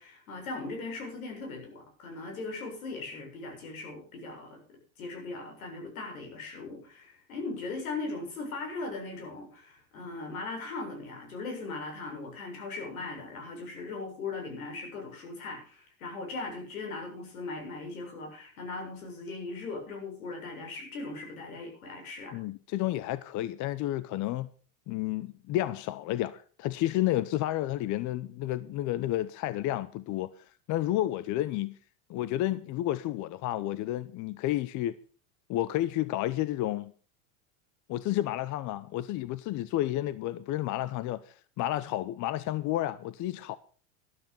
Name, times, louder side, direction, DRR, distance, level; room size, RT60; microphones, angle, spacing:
voice 1, 0.0-22.4, left 3 dB, 85° left, 7.1 m, -39 dB
voice 2, 22.3-24.5 24.9-30.3 30.7-31.8 32.1-34.9 35.5-36.9 37.9-43.6, left 14 dB, 45° left, 0.8 m, -31 dB
13.0 x 12.5 x 5.4 m
supercardioid pair, 105°, 41 cm